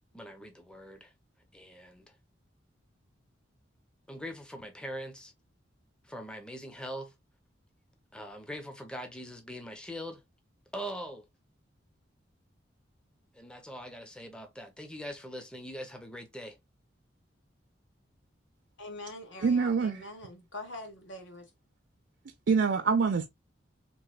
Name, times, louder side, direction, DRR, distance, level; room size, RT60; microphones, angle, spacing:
voice 1, 0.1-1.1 1.5-2.2 4.1-5.3 6.0-7.1 8.1-10.2 10.7-11.2 13.3-16.6, equal, 5° left, 0.5 m, -42 dB
voice 2, 18.8-21.5, left 2 dB, 85° left, 1.3 m, -44 dB
voice 3, 19.4-20.0 22.5-23.3, right 5 dB, 65° right, 0.4 m, -25 dB
3.3 x 3.0 x 2.2 m
head